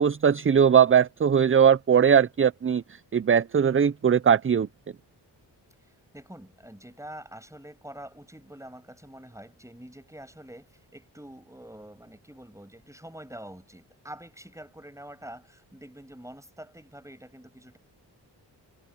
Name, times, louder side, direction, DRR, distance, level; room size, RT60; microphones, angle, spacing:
voice 1, 0.0-2.8 3.1-4.7, right 7 dB, 30° right, 0.5 m, -20 dB
voice 2, 5.9-17.8, right 1 dB, 5° right, 6.9 m, -46 dB
cardioid pair, 50°, 43 cm